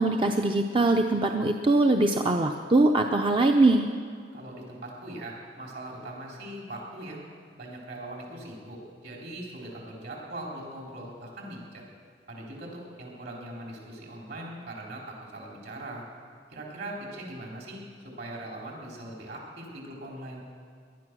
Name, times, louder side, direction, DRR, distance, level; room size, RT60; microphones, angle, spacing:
voice 1, 0.0-3.9, right 2 dB, 30° right, 4 dB, 0.6 m, -22 dB
voice 2, 4.3-7.2 7.6-11.8 12.3-16.1 16.5-20.4, right 1 dB, 65° right, -1 dB, 4.0 m, -40 dB
19.0 x 11.5 x 6.2 m, 2.1 s
head